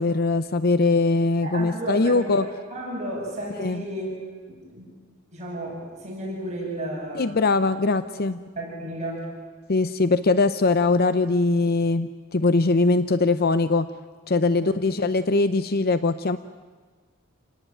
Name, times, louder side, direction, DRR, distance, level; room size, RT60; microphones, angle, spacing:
voice 1, 0.0-2.5 3.6-3.8 7.1-8.4 9.7-13.9 14.3-16.4, left 3 dB, 45° left, 12 dB, 0.7 m, -21 dB
voice 2, 1.4-4.1 4.5-4.9 5.3-7.4 8.6-9.3 14.6-14.8, right 1 dB, 35° right, -3 dB, 7.9 m, -33 dB
28.5 x 18.5 x 9.1 m, 1.5 s
head